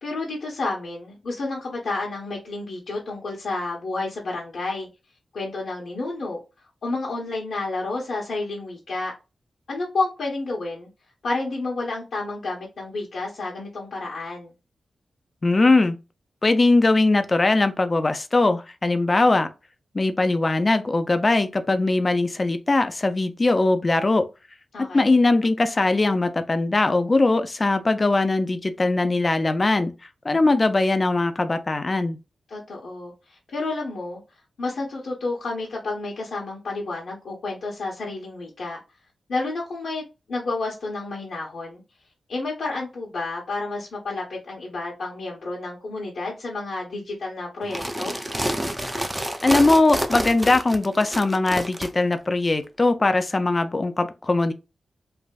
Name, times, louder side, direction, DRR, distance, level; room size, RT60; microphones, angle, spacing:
voice 1, 0.0-4.9 5.3-6.4 6.8-9.1 9.7-10.9 11.2-14.5 24.7-25.2 32.5-34.2 34.6-38.8 39.3-40.0 40.3-41.8 42.3-48.1, left 3 dB, 80° left, 0.9 m, -30 dB
voice 2, 15.4-16.0 16.4-19.5 19.9-24.3 24.9-29.9 30.2-32.2 49.4-54.5, left 2 dB, 35° left, 0.4 m, -20 dB
sound 1, 47.6-51.9, equal, 10° right, 0.5 m, -28 dB
3.3 x 2.5 x 2.3 m
cardioid pair, 60°, 0 cm